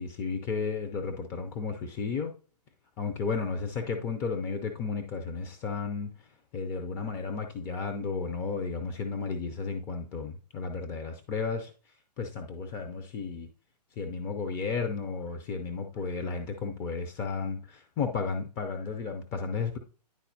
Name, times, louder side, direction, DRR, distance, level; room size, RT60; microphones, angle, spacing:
voice 1, 0.0-2.3 3.0-6.3 6.5-13.5 14.0-19.8, left 5 dB, 15° left, 5 dB, 0.5 m, -33 dB
10.5 x 4.1 x 2.6 m, 0.38 s
figure-of-eight pair, 125°, 21 cm